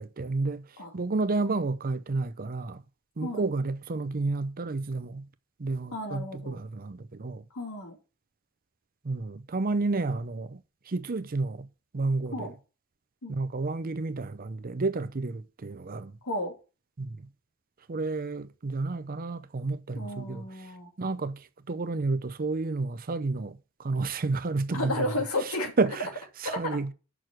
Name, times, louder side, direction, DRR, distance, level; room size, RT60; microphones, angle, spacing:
voice 1, 0.0-2.8 3.2-5.2 5.6-7.5 9.0-11.7 11.9-12.5 13.3-16.2 17.0-17.3 17.9-25.1 25.4-26.1 26.4-26.9, right 3 dB, 40° right, 0.6 m, -31 dB
voice 2, 5.9-6.6 7.5-8.0 12.3-12.5 13.2-13.4 16.2-16.5 19.9-20.9 24.7-25.7 26.4-26.6, left 1 dB, 85° left, 2.8 m, -33 dB
6.8 x 6.2 x 6.1 m
head